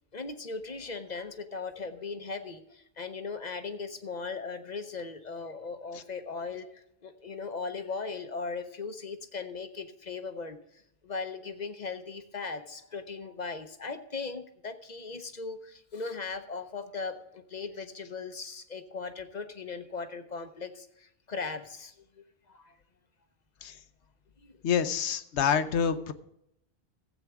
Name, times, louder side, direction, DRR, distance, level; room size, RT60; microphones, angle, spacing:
voice 1, 0.1-6.7 7.0-10.6 11.0-21.9 22.5-22.7, left 4 dB, 45° left, 8 dB, 0.8 m, -38 dB
voice 2, 24.6-26.1, left 7 dB, 85° left, 12 dB, 1.0 m, -27 dB
15.5 x 8.2 x 3.5 m, 0.78 s
omnidirectional pair, 1.1 m